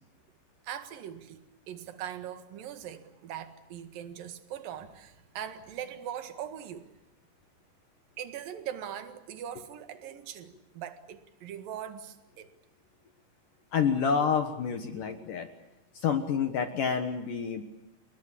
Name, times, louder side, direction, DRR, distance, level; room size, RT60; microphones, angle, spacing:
voice 1, 0.6-6.9 8.2-12.5, right 10 dB, 55° right, 2.9 m, -41 dB
voice 2, 13.7-15.5 15.9-17.6, left 6 dB, 70° left, 2.1 m, -28 dB
29.5 x 20.0 x 8.4 m
omnidirectional pair, 5.6 m